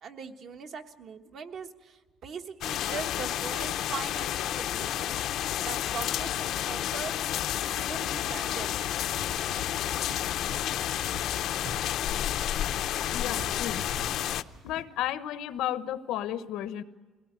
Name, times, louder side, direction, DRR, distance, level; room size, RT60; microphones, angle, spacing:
voice 1, 0.0-5.2 5.6-7.1 7.5-8.8, right 6 dB, 45° right, 6 dB, 1.3 m, -41 dB
sound 1, 2.6-14.4, left 11 dB, 60° left, 0.6 m, -30 dB
sound 2, 8.8-14.8, right 1 dB, 85° right, 1.9 m, -47 dB
voice 2, 13.1-13.8 14.6-16.8, left 12 dB, 90° left, 12 dB, 1.0 m, -33 dB
22.0 x 17.5 x 9.6 m, 1.3 s
cardioid pair, 180°, 0 cm